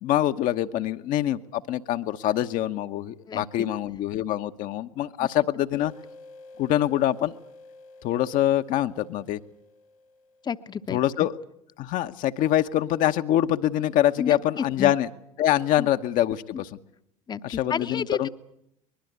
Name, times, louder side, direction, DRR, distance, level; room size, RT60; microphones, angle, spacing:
voice 1, 0.0-5.9 6.6-7.3 8.0-9.4 10.9-11.4 11.8-15.1 15.4-16.7 17.4-18.3, left 12 dB, 50° left, 8 dB, 1.0 m, -24 dB
sound 1, 5.7-11.1, left 3 dB, 70° left, 2.1 m, -50 dB
voice 2, 10.4-11.0 14.2-14.9 15.8-15.9 16.5-16.6 17.3-18.3, left 6 dB, 25° left, 11 dB, 0.9 m, -31 dB
23.0 x 21.5 x 8.1 m, 0.76 s
figure-of-eight pair, 70°, 18 cm